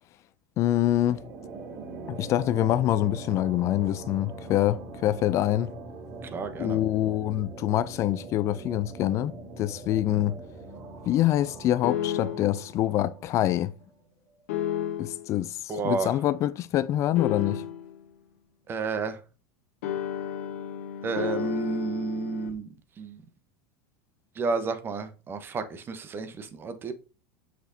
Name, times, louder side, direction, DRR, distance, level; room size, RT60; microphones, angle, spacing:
voice 1, 0.6-1.2 2.1-5.7 6.6-10.4 11.1-13.7 15.0-17.6, left 13 dB, 40° left, 0.4 m, -25 dB
sound 1, 0.9-14.0, right 2 dB, 45° right, 1.9 m, -42 dB
voice 2, 6.2-6.8 10.1-10.2 15.7-16.2 18.7-19.2 21.0-22.7 23.0-23.2 24.4-26.9, right 4 dB, 30° right, 1.0 m, -31 dB
sound 2, 11.8-12.6 14.5-15.3 17.2-18.0 19.8-22.5, left 10 dB, 75° left, 1.4 m, -32 dB
6.1 x 6.0 x 2.7 m
hypercardioid pair, 105°, 7 cm